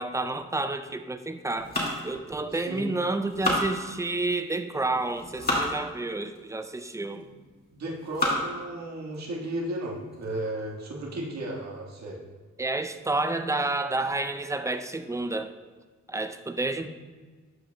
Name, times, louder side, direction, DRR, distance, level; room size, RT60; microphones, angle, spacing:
voice 1, 0.0-1.7 2.0-7.3 12.6-15.5 16.1-16.9, right 2 dB, 10° right, 9 dB, 0.4 m, -30 dB
sound 1, 1.6-2.8 3.2-4.3 4.9-5.7 6.3-6.4 7.2-7.5 7.9-8.6 9.1-9.2 9.6-9.7 10.1-10.4, left 1 dB, 30° left, 2.1 m, -30 dB
voice 2, 2.5-2.9 7.7-12.2 16.8-16.9, right 1 dB, 65° right, -2 dB, 1.7 m, -34 dB
13.0 x 5.0 x 2.2 m, 1.4 s
cardioid pair, 100°, 30 cm